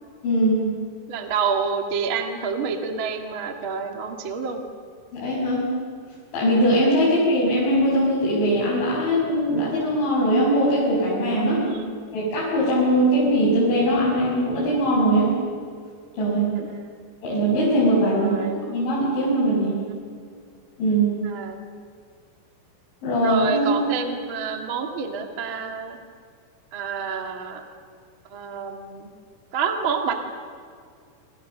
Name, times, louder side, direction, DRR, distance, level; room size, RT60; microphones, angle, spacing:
voice 1, 0.2-0.7 5.1-5.7 6.3-11.7 12.1-15.3 16.2-16.5 17.2-19.7 20.8-21.2 23.0-23.8, right 1 dB, 65° left, -8 dB, 8.8 m, -21 dB
voice 2, 1.1-4.6 6.9-7.2 11.6-11.9 16.4-16.8 18.1-18.6 19.9-20.2 21.2-21.6 23.2-26.0 26.7-27.6 28.3-29.1 29.5-30.2, right 6 dB, 50° right, 4 dB, 1.4 m, -28 dB
28.0 x 26.5 x 6.7 m, 2.1 s
omnidirectional pair, 6.0 m